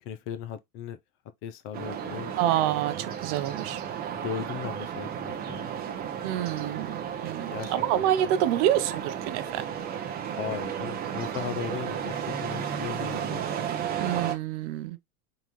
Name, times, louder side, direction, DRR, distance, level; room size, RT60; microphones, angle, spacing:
voice 1, 0.0-1.0 1.4-2.3 4.1-5.7 7.5-8.0 10.4-13.4, left 9 dB, 30° left, 0.5 m, -37 dB
sound 1, 1.7-14.4, right 8 dB, 20° right, 0.7 m, -33 dB
voice 2, 2.4-3.8 6.2-9.7 14.0-15.0, right 12 dB, 55° right, 0.6 m, -27 dB
4.0 x 3.8 x 3.0 m
supercardioid pair, 140°, 43 cm